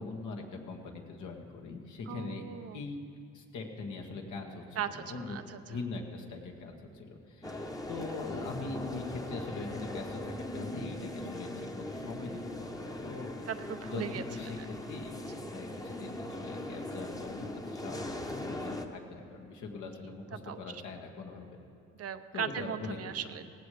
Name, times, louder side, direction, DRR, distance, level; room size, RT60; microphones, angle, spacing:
voice 1, 0.0-2.4 2.7-3.0 3.3-5.4 5.7-13.5 13.8-14.6 14.9-21.6 22.3-23.1, left 3 dB, 75° left, 1 dB, 1.8 m, -42 dB
voice 2, 2.1-2.8 4.8-5.0 5.3-5.6 7.4-7.6 13.5-14.2 20.5-20.6 22.0-23.5, right 8 dB, 55° right, 10 dB, 0.7 m, -37 dB
sound 1, 7.4-18.9, left 1 dB, 10° left, 1.0 m, -40 dB
17.5 x 15.5 x 3.4 m, 2.5 s
cardioid pair, 90°, 30 cm